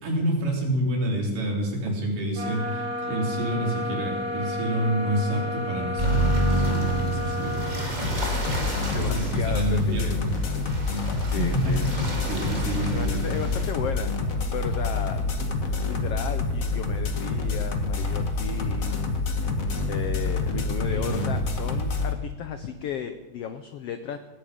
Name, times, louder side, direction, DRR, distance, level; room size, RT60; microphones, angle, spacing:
voice 1, 0.0-8.0 9.0-10.2 11.4-11.9 12.3-13.3 20.5-21.3, right 1 dB, 75° right, -2 dB, 5.2 m, -28 dB
sound 1, 2.3-7.9, left 2 dB, 40° right, 4.8 m, -32 dB
sound 2, 6.0-13.7, right 2 dB, 15° right, 1.9 m, -29 dB
sound 3, 8.0-22.1, left 3 dB, 50° left, 1.0 m, -27 dB
voice 2, 8.9-10.2 11.2-12.1 12.9-14.1 14.5-15.2 15.9-19.1 19.9-24.2, left 8 dB, 85° left, 9 dB, 1.3 m, -34 dB
18.0 x 15.5 x 5.1 m, 1.1 s
omnidirectional pair, 3.8 m